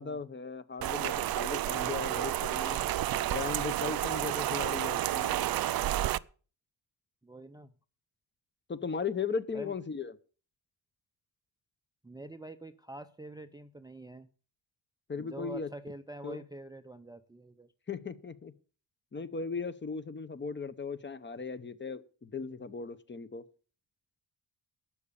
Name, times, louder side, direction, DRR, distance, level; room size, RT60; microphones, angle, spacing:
voice 1, 0.0-2.8 3.3-5.5 8.7-10.2 15.1-15.7 16.2-16.4 17.9-18.5 19.1-23.4, left 5 dB, 25° left, 0.8 m, -37 dB
Rain, 0.8-6.2, right 13 dB, 55° right, 0.5 m, -31 dB
voice 2, 7.2-7.7 9.5-9.7 12.0-14.3 15.2-17.7, right 1 dB, 10° right, 0.5 m, -46 dB
12.0 x 8.5 x 6.8 m
wide cardioid pair, 145°, 44 cm